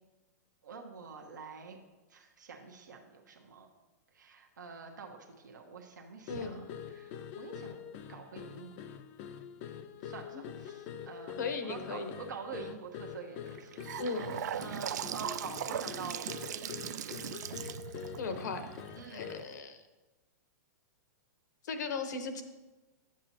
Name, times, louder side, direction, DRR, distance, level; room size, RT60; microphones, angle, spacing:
voice 1, 0.6-1.8 2.1-3.7 4.1-6.6 6.9-7.8 8.1-8.7 9.7-11.4 11.6-14.0 14.5-16.3 19.0-19.3, right 5 dB, 90° right, 2 dB, 1.0 m, -46 dB
voice 2, 6.3-6.6 10.3-10.4 11.4-12.1 14.0-14.3 16.7-16.8 18.2-18.7 19.1-19.8 21.6-22.4, left 4 dB, 75° left, 7 dB, 1.0 m, -37 dB
sound 1, 6.3-19.6, left 8 dB, 45° left, 0.5 m, -45 dB
Gurgling / Sink (filling or washing) / Bathtub (filling or washing), 13.5-19.5, right 10 dB, 75° right, 0.4 m, -39 dB
10.5 x 7.6 x 2.8 m, 1.2 s
hypercardioid pair, 125°, 10 cm